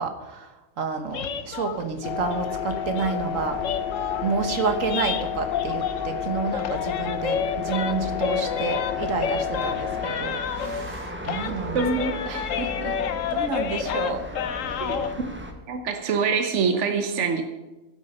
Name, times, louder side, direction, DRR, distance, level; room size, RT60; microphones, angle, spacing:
voice 1, 0.0-3.6 4.2-11.8 12.3-13.0 13.3-14.2 14.6-14.9, right 5 dB, 85° right, 6 dB, 1.7 m, -30 dB
sound 1, 1.1-6.2 6.5-11.0 11.2-15.1, left 8 dB, 80° left, 1.1 m, -30 dB
sound 2, 2.0-10.1, left 9 dB, 55° left, 0.9 m, -30 dB
sound 3, 2.7-15.5, right 1 dB, 10° right, 1.3 m, -39 dB
voice 2, 11.7-12.2 14.8-15.3 15.7-17.4, right 5 dB, 65° right, 6 dB, 1.3 m, -25 dB
16.5 x 8.2 x 5.5 m, 1.1 s
omnidirectional pair, 1.3 m